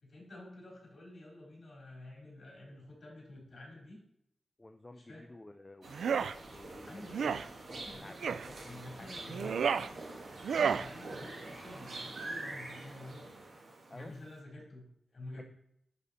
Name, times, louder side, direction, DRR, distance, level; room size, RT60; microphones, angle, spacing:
voice 1, 0.0-4.0 4.9-5.2 6.9-7.2 7.8-9.9 10.5-13.2 13.9-15.4, left 1 dB, 40° left, -4 dB, 3.9 m, -50 dB
voice 2, 4.6-5.9 6.5-7.4 7.7-9.7 13.9-14.2 15.4-15.5, left 2 dB, 15° left, 7 dB, 0.4 m, -52 dB
sound 1, 5.8-14.2, right 2 dB, 55° right, 1.8 m, -46 dB
sound 2, 5.9-6.3 7.1-7.4 8.2-8.5 9.3-9.9 10.4-10.9, right 6 dB, 85° right, 0.3 m, -31 dB
10.5 x 5.1 x 4.2 m, 0.75 s
wide cardioid pair, 140°, 0 cm